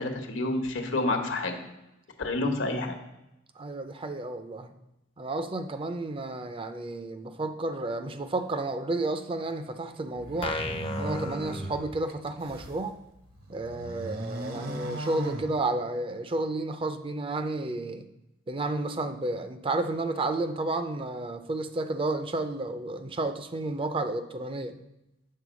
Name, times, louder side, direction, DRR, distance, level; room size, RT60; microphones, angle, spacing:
voice 1, 0.0-1.5 2.2-2.9, left 2 dB, 75° left, 4 dB, 1.1 m, -28 dB
voice 2, 3.6-4.7 5.2-10.6 11.0-13.0 13.5-18.1 18.5-24.8, right 2 dB, 30° right, 9 dB, 0.5 m, -31 dB
sound 1, 10.2-12.8 13.3-16.1, right 1 dB, 50° right, 0.9 m, -38 dB
sound 2, 10.4-12.3, left 2 dB, 30° left, 0.5 m, -35 dB
8.5 x 3.7 x 6.2 m, 0.92 s
head